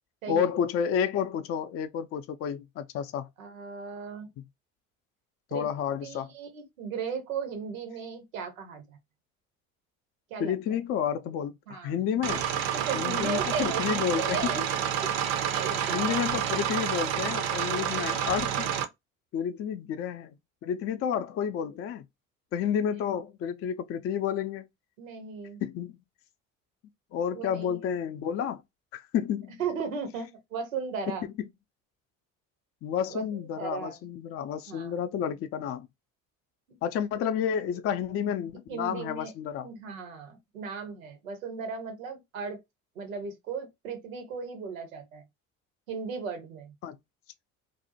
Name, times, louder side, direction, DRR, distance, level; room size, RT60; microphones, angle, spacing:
voice 1, 0.3-3.3 5.5-6.3 10.4-12.4 12.9-14.4 15.9-18.7 19.3-20.3 20.6-22.0 22.5-24.7 25.6-26.0 27.1-28.6 28.9-29.6 32.8-35.9 36.8-39.7 46.8-47.0, left 8 dB, 35° left, 0.4 m, -30 dB
voice 2, 3.4-4.3 5.5-5.7 6.0-9.0 10.3-10.5 11.7-12.0 12.7-15.1 15.5-16.4 25.0-25.6 27.3-27.8 29.6-31.3 33.1-33.2 33.5-34.0 34.7-35.0 38.7-39.3 39.6-42.6 42.9-45.2 45.9-46.7, right 5 dB, 85° right, 0.9 m, -36 dB
sound 1, 12.2-18.8, right 9 dB, 65° right, 0.6 m, -29 dB
2.6 x 2.1 x 2.6 m
hypercardioid pair, 60°, 39 cm